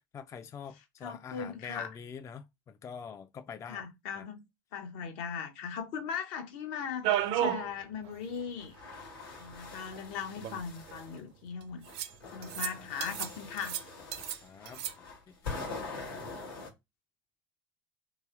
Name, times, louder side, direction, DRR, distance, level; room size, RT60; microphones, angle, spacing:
voice 1, 0.1-3.9 4.1-4.3 12.2-12.9 14.4-15.5, left 6 dB, 25° left, 0.3 m, -46 dB
voice 2, 1.0-1.9 3.7-4.4 4.7-8.8 9.4-11.8 12.3-13.8, left 6 dB, 65° left, 0.8 m, -39 dB
sound 1, 7.0-7.7 8.0-8.1 8.4-8.5 9.5-9.6 10.4-11.0 11.9-12.1 12.4-12.7 13.0-13.3 13.6-14.4 14.7-14.9, right 11 dB, 55° right, 0.5 m, -32 dB
sound 2, 8.6-11.2 11.8-16.7, left 3 dB, 90° left, 1.0 m, -44 dB
3.0 x 2.8 x 2.3 m
hypercardioid pair, 75°, 12 cm